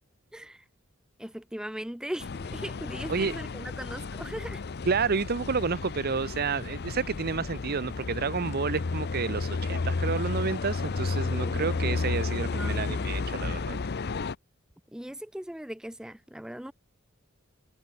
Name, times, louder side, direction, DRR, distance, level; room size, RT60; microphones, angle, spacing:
voice 1, 0.3-0.6 1.2-4.6 11.4-12.0 12.5-12.8 14.9-16.7, equal, 5° right, 0.5 m, -39 dB
sound 1, 2.2-14.4, left 3 dB, 50° left, 0.6 m, -32 dB
voice 2, 4.9-13.8, right 5 dB, 50° right, 0.7 m, -30 dB
head